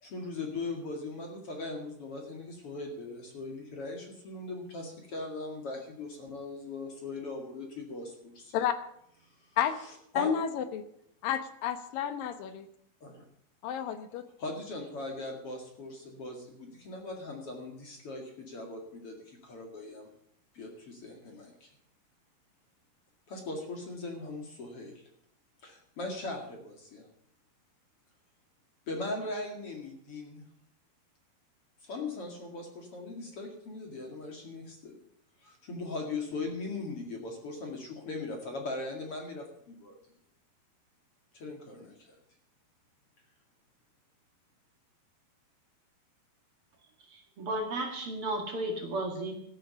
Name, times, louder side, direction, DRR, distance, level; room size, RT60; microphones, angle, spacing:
voice 1, 0.0-8.5 9.4-9.5 10.1-10.3 13.0-13.2 14.4-20.1 20.5-21.7 23.3-24.9 25.6-27.1 28.9-30.4 31.8-34.9 35.4-40.0 41.3-42.2, left 3 dB, 45° left, 2 dB, 2.6 m, -39 dB
voice 2, 10.1-10.8 11.2-12.7 13.6-14.2, left 9 dB, 70° left, 10 dB, 2.6 m, -31 dB
voice 3, 47.4-49.3, right 1 dB, 45° right, 4 dB, 2.3 m, -33 dB
14.5 x 8.6 x 7.0 m, 0.73 s
omnidirectional pair, 4.5 m